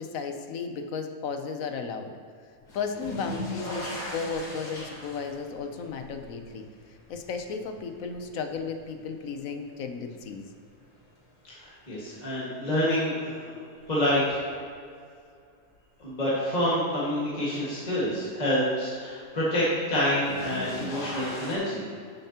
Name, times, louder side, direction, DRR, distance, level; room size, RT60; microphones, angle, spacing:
voice 1, 0.0-2.1 2.7-6.6 7.1-10.5, left 5 dB, 65° left, 6 dB, 1.1 m, -34 dB
sound 1, 2.7-9.7 10.1-10.8 12.4-12.5 14.1-14.2 19.9-21.6, left 1 dB, 85° left, 2.1 m, -39 dB
voice 2, 11.4-13.6 13.9-14.4 16.0-21.8, equal, 25° left, -9 dB, 1.9 m, -27 dB
11.5 x 6.8 x 2.9 m, 2.2 s
omnidirectional pair, 1.7 m